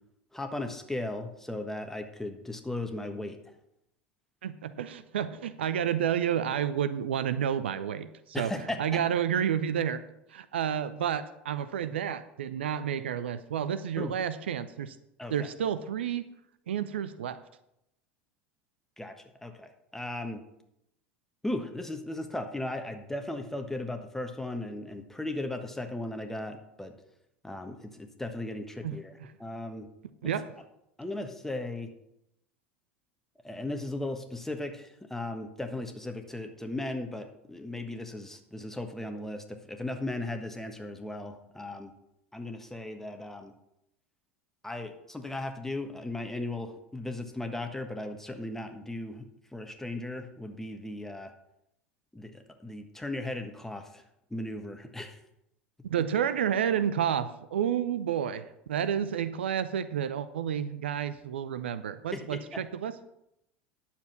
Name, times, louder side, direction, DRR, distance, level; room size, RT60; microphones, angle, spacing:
voice 1, 0.3-3.5 8.3-9.0 14.0-14.1 15.2-15.5 19.0-19.1 19.4-20.4 21.4-26.9 27.4-29.9 30.2-30.3 31.0-31.9 33.4-41.9 42.3-43.5 44.6-49.3 49.5-51.3 52.1-54.0 54.3-55.2 62.1-62.6, left 2 dB, 5° left, 6 dB, 1.4 m, -37 dB
voice 2, 4.4-8.5 8.8-10.0 10.3-15.0 15.3-16.3 16.7-17.4 28.8-29.0 30.2-30.5 55.8-62.9, right 9 dB, 70° right, 14 dB, 0.5 m, -30 dB
10.5 x 7.2 x 5.9 m, 0.83 s
figure-of-eight pair, 75°, 6 cm